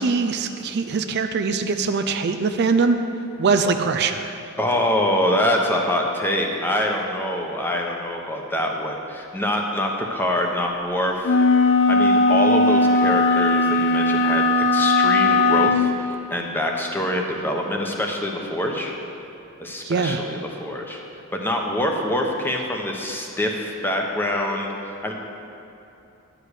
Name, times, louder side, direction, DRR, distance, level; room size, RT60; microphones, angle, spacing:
voice 1, 0.0-3.0 3.4-4.3 19.8-20.2, right 4 dB, 50° right, 7 dB, 0.4 m, -22 dB
voice 2, 4.6-11.5 11.9-19.0 19.6-21.0 21.3-25.1, left 1 dB, 10° left, 1 dB, 0.9 m, -25 dB
sound 1, 11.2-15.9, left 2 dB, 60° left, 0.5 m, -18 dB
11.0 x 5.0 x 8.2 m, 2.9 s
head